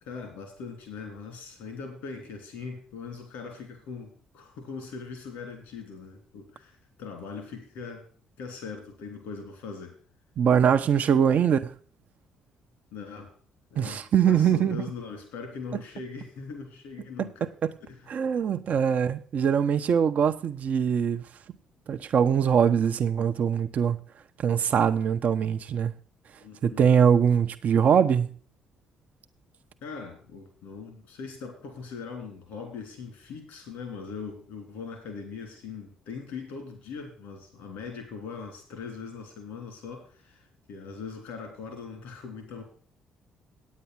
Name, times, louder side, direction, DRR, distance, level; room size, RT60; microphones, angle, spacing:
voice 1, 0.0-8.0 8.4-10.0 12.9-13.3 13.7-17.5 17.8-18.0 18.9-19.0 26.4-26.8 29.8-42.6, left 5 dB, 75° left, 3.1 m, -40 dB
voice 2, 10.4-11.7 13.8-14.8 17.4-17.8 18.1-21.2 21.9-24.0 24.4-25.9 26.6-28.3, right 7 dB, 50° right, 0.6 m, -23 dB
9.2 x 8.4 x 5.8 m
hypercardioid pair, 50°, 3 cm